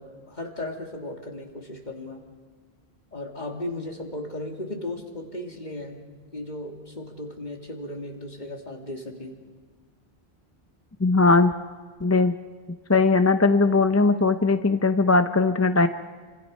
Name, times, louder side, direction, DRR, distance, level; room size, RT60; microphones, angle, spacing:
voice 1, 0.0-2.2 3.1-6.0 6.3-9.4, left 1 dB, 45° left, 1 dB, 2.7 m, -36 dB
voice 2, 11.0-11.5 12.0-12.3 12.9-15.9, left 3 dB, 20° left, 9 dB, 0.6 m, -19 dB
28.5 x 25.0 x 5.4 m, 1.5 s
omnidirectional pair, 1.0 m